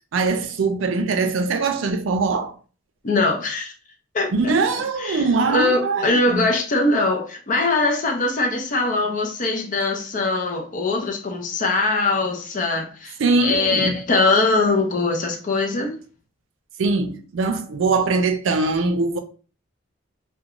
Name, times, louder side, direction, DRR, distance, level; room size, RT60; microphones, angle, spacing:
voice 1, 0.1-2.5 4.3-6.5 13.2-14.0 16.8-19.2, right 3 dB, 85° right, 0.4 m, -22 dB
voice 2, 3.0-3.7 4.1-4.5 5.0-5.2 5.5-16.0, left 3 dB, 45° left, 0.5 m, -22 dB
2.3 x 2.2 x 2.9 m
head